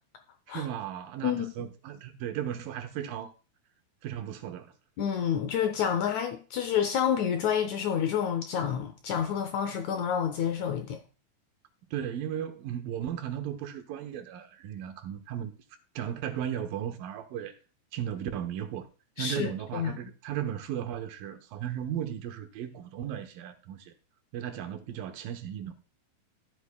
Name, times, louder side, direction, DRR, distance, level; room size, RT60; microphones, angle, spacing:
voice 1, 0.5-3.3 4.0-4.7 11.9-15.5 16.0-17.5 17.9-18.9 19.2-23.9 24.3-25.7, right 10 dB, 75° right, 2.6 m, -35 dB
voice 2, 1.2-1.7 5.0-11.0 19.2-19.9, left 8 dB, 75° left, 1.7 m, -29 dB
13.0 x 8.3 x 2.2 m
omnidirectional pair, 4.2 m